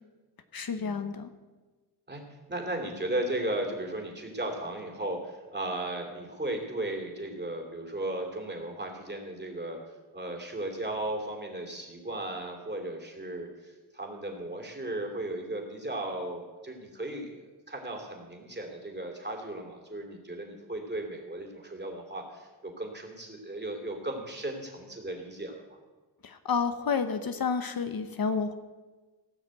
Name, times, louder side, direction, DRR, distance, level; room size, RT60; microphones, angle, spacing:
voice 1, 0.5-1.3 26.2-28.5, left 5 dB, 60° left, 9 dB, 0.9 m, -30 dB
voice 2, 2.5-9.8 10.1-17.3 17.7-25.8, right 1 dB, 25° right, 1 dB, 3.0 m, -36 dB
17.0 x 6.5 x 7.8 m, 1.3 s
wide cardioid pair, 85°, 41 cm